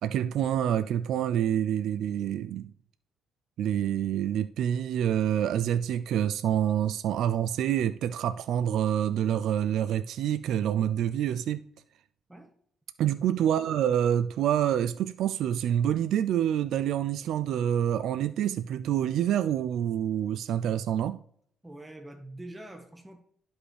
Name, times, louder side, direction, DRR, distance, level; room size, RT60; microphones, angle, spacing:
voice 1, 0.0-2.7 3.6-11.6 13.0-21.2, right 10 dB, 80° right, 0.3 m, -27 dB
voice 2, 21.6-23.2, right 1 dB, 10° right, 1.3 m, -44 dB
11.5 x 5.3 x 3.3 m
cardioid pair, 90°, 0 cm